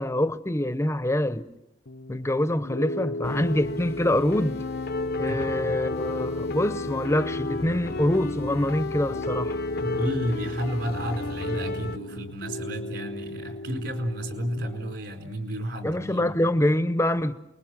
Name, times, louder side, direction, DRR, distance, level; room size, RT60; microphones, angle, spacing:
voice 1, 0.0-1.5 2.1-4.6 5.2-9.6 15.8-17.3, left 1 dB, 15° left, 0.9 m, -25 dB
Piano, 1.9-14.9, left 2 dB, 85° left, 1.2 m, -36 dB
sound 1, 3.2-12.0, left 2 dB, 55° left, 0.9 m, -33 dB
voice 2, 5.3-6.0 9.8-16.3, equal, 65° right, 4.3 m, -32 dB
28.5 x 21.0 x 7.5 m
head